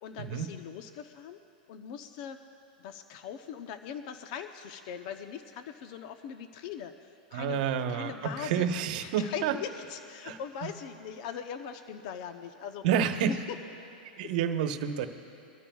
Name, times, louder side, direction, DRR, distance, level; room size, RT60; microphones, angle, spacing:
voice 1, 0.0-1.4 1.7-2.4 2.8-8.7 9.0-12.9 13.2-13.6 14.2-14.3, left 8 dB, 55° left, 8 dB, 0.7 m, -41 dB
voice 2, 7.3-9.5 10.2-10.4 12.8-13.4 14.2-15.1, right 8 dB, 60° right, 7 dB, 1.1 m, -29 dB
23.5 x 13.0 x 2.4 m, 2.8 s
hypercardioid pair, 135°, 5 cm